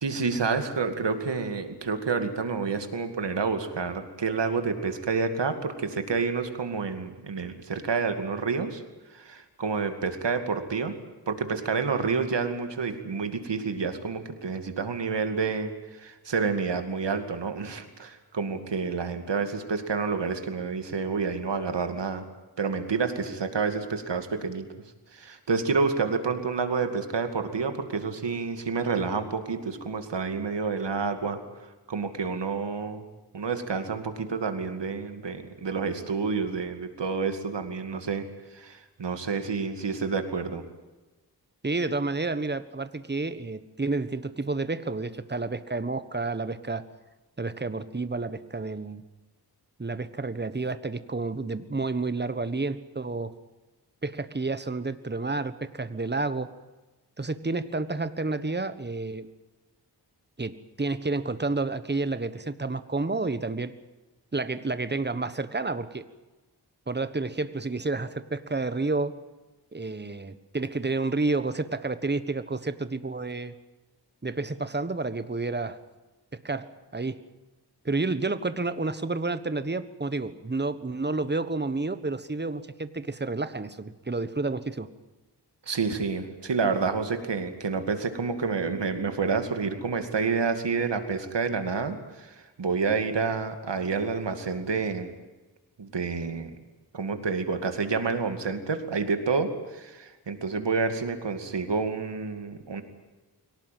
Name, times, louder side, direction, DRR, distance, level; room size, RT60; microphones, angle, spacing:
voice 1, 0.0-8.8 9.1-11.0 11.3-15.7 16.0-22.2 22.6-24.7 25.1-31.4 31.9-33.0 33.3-38.3 38.5-40.6 85.7-95.1 95.8-96.5 96.9-102.8, right 5 dB, 90° right, 7 dB, 2.4 m, -29 dB
voice 2, 41.6-46.9 47.4-49.0 49.8-53.3 54.0-56.5 57.2-59.3 60.4-63.8 64.3-66.1 66.9-69.1 69.7-73.5 74.2-75.8 76.3-77.2 77.8-84.9, right 3 dB, 25° right, 12 dB, 1.3 m, -30 dB
23.5 x 18.0 x 9.3 m, 1.2 s
wide cardioid pair, 75°, 41 cm